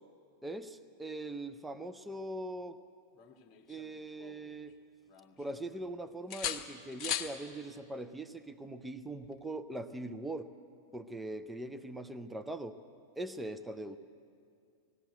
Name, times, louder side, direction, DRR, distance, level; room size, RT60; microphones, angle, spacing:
voice 1, 0.4-2.8 3.7-4.7 5.4-10.5 10.9-12.8 13.2-14.0, right 2 dB, 5° right, 11 dB, 0.7 m, -41 dB
sound 1, 3.2-4.7 5.1-5.9 6.3-7.4 9.2-9.4, left 9 dB, 35° left, 1.4 m, -40 dB
20.0 x 15.0 x 9.2 m, 2.4 s
figure-of-eight pair, 90°, 0 cm